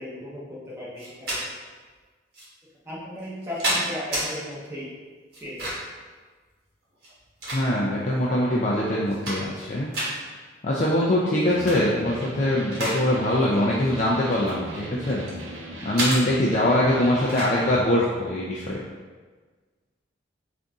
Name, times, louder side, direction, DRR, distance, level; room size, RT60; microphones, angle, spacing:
voice 1, 0.0-1.4 2.8-4.9 5.4-5.7, left 1 dB, 15° right, -8 dB, 1.0 m, -36 dB
sound 1, 1.0-1.4 2.3-2.5 3.2-4.3 5.3-6.0 6.9-8.0 8.6-8.7 9.0-9.6 9.9-10.1 11.5-11.8 12.2-13.0 13.3-13.5 14.3-15.4 16.0-16.2 17.3-17.5, right 1 dB, 55° right, 1.2 m, -29 dB
voice 2, 7.5-9.9 10.6-15.3 15.8-18.8, left 1 dB, 40° left, -5 dB, 0.4 m, -23 dB
Electric guitar, 11.4-17.9, right 1 dB, 85° right, 0.6 m, -39 dB
3.9 x 2.6 x 3.5 m, 1.4 s
head